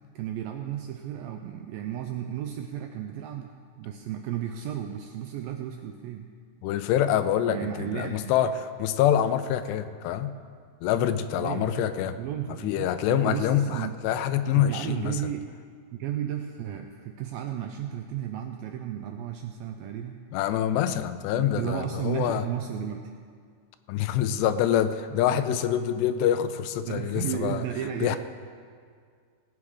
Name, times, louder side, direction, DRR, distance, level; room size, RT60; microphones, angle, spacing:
voice 1, 0.2-6.3 7.5-8.2 11.3-14.0 14.5-15.5 15.9-20.2 21.3-23.1 25.3-25.9 26.9-28.2, right 10 dB, 90° right, 4 dB, 2.1 m, -34 dB
voice 2, 6.6-10.3 10.8-12.2 12.6-15.2 20.3-22.5 23.9-27.6 28.0-28.2, left 10 dB, 90° left, 11 dB, 2.8 m, -26 dB
18.5 x 8.7 x 4.9 m, 2.1 s
omnidirectional pair, 4.7 m